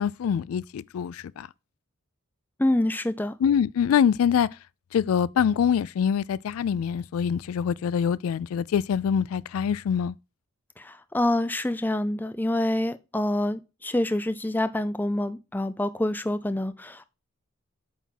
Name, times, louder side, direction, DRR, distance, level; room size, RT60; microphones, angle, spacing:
voice 1, 0.0-1.5 3.4-4.5 4.9-10.1, left 8 dB, 80° left, 0.3 m, -24 dB
voice 2, 2.6-3.4 10.8-17.0, left 1 dB, 10° left, 0.4 m, -26 dB
8.5 x 3.5 x 5.8 m
head